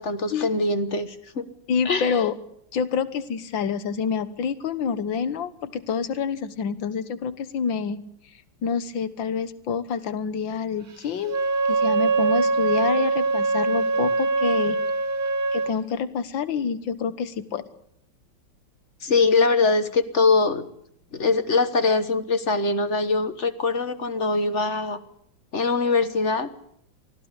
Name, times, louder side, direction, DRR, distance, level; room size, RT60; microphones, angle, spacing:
voice 1, 0.0-1.5 1.8-2.2 19.0-20.7 21.1-25.0 25.5-26.5, left 3 dB, 40° left, 11 dB, 1.4 m, -22 dB
voice 2, 1.7-2.4 2.7-8.0 8.6-11.4 11.7-14.8 15.5-17.6, left 6 dB, 75° left, 14 dB, 2.0 m, -27 dB
Wind instrument woodwind instrument, 11.2-15.7, right 4 dB, 50° right, 2.1 m, -23 dB
24.0 x 16.0 x 8.3 m, 0.71 s
omnidirectional pair, 2.1 m